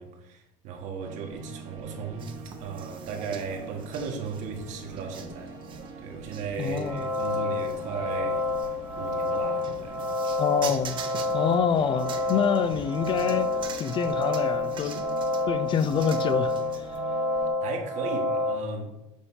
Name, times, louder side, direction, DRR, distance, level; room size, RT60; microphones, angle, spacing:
voice 1, 0.0-2.3 2.6-5.5 6.0-8.4 9.0-10.1 17.6-18.9, right 5 dB, 55° right, 1.5 m, -36 dB
sound 1, 1.0-17.5, right 4 dB, 85° right, 2.3 m, -45 dB
sound 2, 2.2-17.0, right 5 dB, 35° right, 0.9 m, -44 dB
voice 2, 6.6-7.1 10.4-11.0 11.3-13.5 13.8-15.0 15.5-16.9, left 7 dB, 35° left, 0.4 m, -26 dB
sound 3, 6.8-18.6, left 2 dB, 15° right, 1.2 m, -29 dB
7.1 x 3.3 x 5.6 m
cardioid pair, 135°, 15 cm